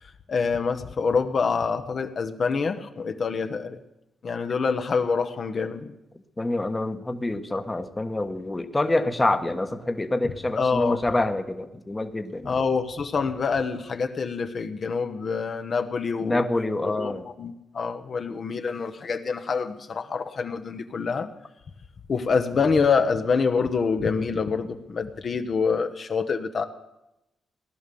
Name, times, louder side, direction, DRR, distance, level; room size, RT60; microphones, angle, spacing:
voice 1, 0.0-3.8 4.2-5.9 10.2-11.0 12.4-16.5 16.8-21.3 22.1-26.6, left 5 dB, 50° left, 7 dB, 1.1 m, -26 dB
voice 2, 6.4-12.5 16.2-17.3, left 2 dB, 20° left, 7 dB, 1.2 m, -26 dB
17.5 x 11.0 x 7.0 m, 0.92 s
cardioid pair, 90°, 0 cm